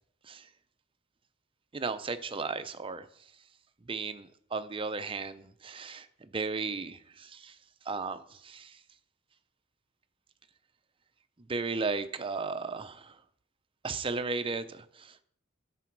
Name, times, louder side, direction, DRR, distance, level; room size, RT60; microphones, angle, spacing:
voice 1, 1.7-3.1 3.9-6.1 6.3-7.5 7.9-8.8 11.5-13.2 13.8-15.2, right 4 dB, 25° right, 10 dB, 0.5 m, -35 dB
9.7 x 6.2 x 4.6 m, 0.66 s
head